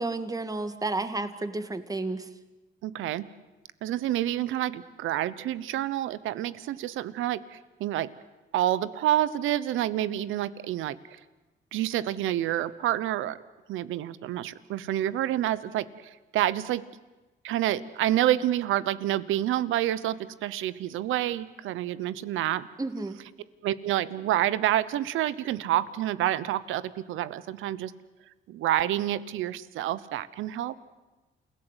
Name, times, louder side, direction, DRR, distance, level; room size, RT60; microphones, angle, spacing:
voice 1, 0.0-2.3 22.8-23.2, right 2 dB, 20° right, 10 dB, 1.8 m, -31 dB
voice 2, 2.8-3.3 3.8-8.1 8.5-11.2 11.7-13.4 13.7-16.8 17.4-22.7 23.6-27.9 28.5-30.8, right 13 dB, 85° right, 16 dB, 1.0 m, -28 dB
29.0 x 17.0 x 8.2 m, 1.1 s
cardioid pair, 90°, 20 cm